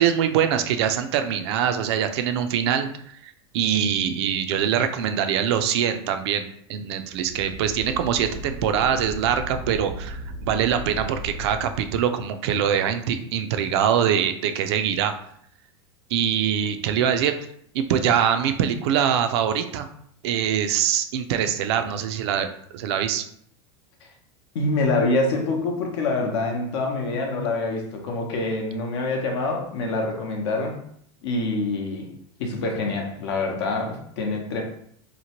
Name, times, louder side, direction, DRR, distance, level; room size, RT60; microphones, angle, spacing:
voice 1, 0.0-2.9 3.2-15.1 16.1-17.4 17.7-19.9 20.2-22.5 22.7-23.3, right 9 dB, 70° right, 8 dB, 0.4 m, -23 dB
sound 1, 7.1-11.9, equal, 45° left, 0.9 m, -36 dB
voice 2, 24.5-30.8 31.2-32.1 32.4-34.6, left 2 dB, 70° left, 2 dB, 0.8 m, -26 dB
2.9 x 2.1 x 2.9 m, 0.66 s
supercardioid pair, 125°, 14 cm